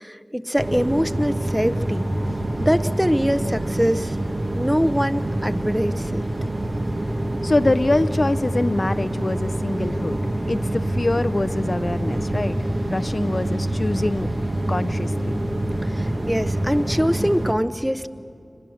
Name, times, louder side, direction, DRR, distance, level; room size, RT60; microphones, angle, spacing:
voice 1, 0.0-2.1 2.6-4.2 4.5-6.2 15.8-18.1, equal, 5° right, 11 dB, 0.7 m, -23 dB
sound 1, 0.6-17.5, right 1 dB, 60° right, 1.3 m, -26 dB
voice 2, 7.4-12.6 12.9-14.3 14.7-15.4, left 2 dB, 55° left, 13 dB, 0.4 m, -24 dB
24.0 x 20.5 x 6.4 m, 2.5 s
wide cardioid pair, 45°, 0 cm